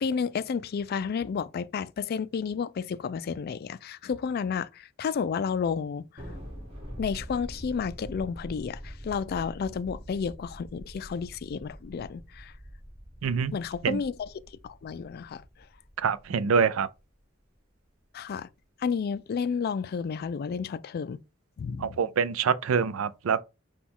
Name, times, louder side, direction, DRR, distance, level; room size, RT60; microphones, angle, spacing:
voice 1, 0.0-6.0 7.0-12.5 13.5-14.3 14.6-15.4 18.1-18.5 18.8-21.2 21.6-22.1, left 6 dB, 50° left, 0.3 m, -31 dB
Thunder, 6.2-16.8, equal, 30° right, 1.9 m, -44 dB
voice 2, 13.2-13.5 13.8-14.0 16.0-16.9 21.8-23.4, right 6 dB, 85° right, 0.4 m, -25 dB
6.0 x 2.3 x 3.7 m
head